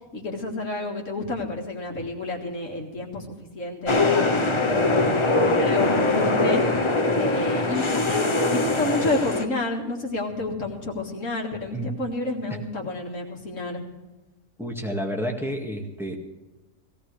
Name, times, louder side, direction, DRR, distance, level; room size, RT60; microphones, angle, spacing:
voice 1, 0.1-4.3 4.8-6.6 7.2-13.8, left 2 dB, 70° left, -2 dB, 2.3 m, -30 dB
sound 1, 3.9-9.5, left 2 dB, 25° left, 0.7 m, -22 dB
voice 2, 14.6-16.2, equal, ahead, 0 dB, 1.9 m, -30 dB
19.0 x 16.5 x 3.3 m, 1.1 s
omnidirectional pair, 1.4 m